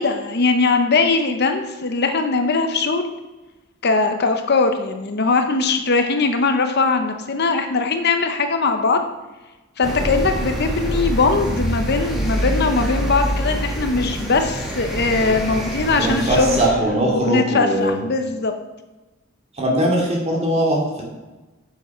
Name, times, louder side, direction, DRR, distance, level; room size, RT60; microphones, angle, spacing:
voice 1, 0.0-3.1 3.8-9.0 9.8-16.6 17.1-18.5, left 3 dB, 50° left, 6 dB, 0.8 m, -20 dB
sound 1, 9.8-16.7, equal, ahead, 2.0 m, -25 dB
voice 2, 16.0-18.0 19.5-21.0, right 1 dB, 30° right, -2 dB, 2.6 m, -20 dB
9.6 x 7.2 x 4.3 m, 1.1 s
head